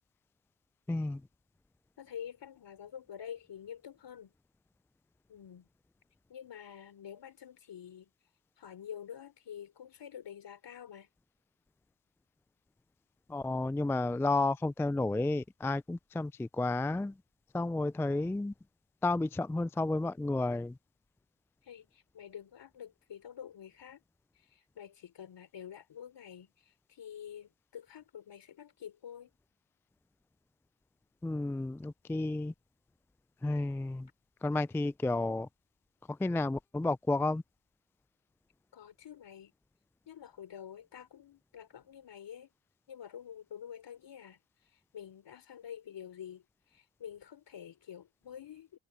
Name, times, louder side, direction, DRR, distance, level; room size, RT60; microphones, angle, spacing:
voice 1, 0.9-1.2 13.3-17.1 17.5-18.5 19.0-20.8 31.2-32.5 33.4-34.1 34.4-35.5 36.1-37.4, left 2 dB, 5° left, 0.4 m, -31 dB
voice 2, 2.0-4.3 5.3-5.7 6.3-8.1 8.6-11.1 21.6-24.0 24.3-29.3 38.7-39.5 40.1-42.5 42.9-48.8, left 9 dB, 60° left, 4.2 m, -48 dB
supercardioid pair, 60°, 47 cm